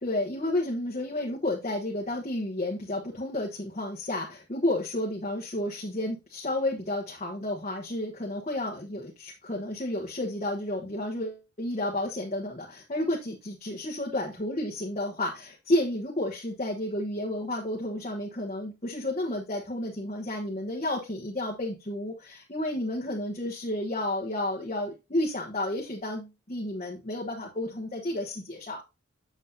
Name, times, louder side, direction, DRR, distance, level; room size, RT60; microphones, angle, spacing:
voice 1, 0.0-28.8, left 1 dB, 35° left, -1 dB, 1.2 m, -31 dB
7.9 x 7.1 x 2.7 m, 0.26 s
head